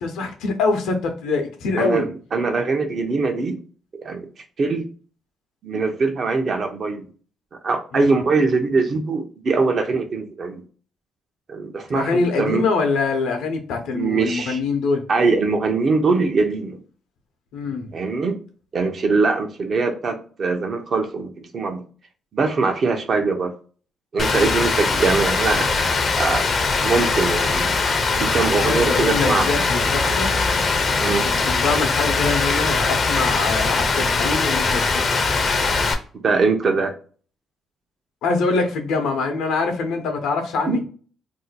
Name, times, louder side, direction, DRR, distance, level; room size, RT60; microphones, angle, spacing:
voice 1, 0.0-2.0 7.9-8.2 11.9-15.0 17.5-17.9 24.3-24.5 28.6-30.4 31.4-35.1 38.2-40.8, left 4 dB, 85° left, 5 dB, 0.7 m, -24 dB
voice 2, 1.8-3.6 3.9-4.3 4.6-4.8 5.6-7.1 7.6-10.6 11.5-12.6 13.9-14.6 15.1-16.8 17.9-18.4 18.7-21.8 22.3-23.5 24.1-26.5 26.8-27.7 28.2-29.6 30.0-30.2 31.0-31.3 36.1-36.9 40.7-40.8, right 4 dB, 50° right, 5 dB, 0.6 m, -22 dB
Rain, 24.2-35.9, left 4 dB, 45° left, 0.5 m, -21 dB
2.7 x 2.2 x 4.0 m, 0.41 s
cardioid pair, 90°, 0 cm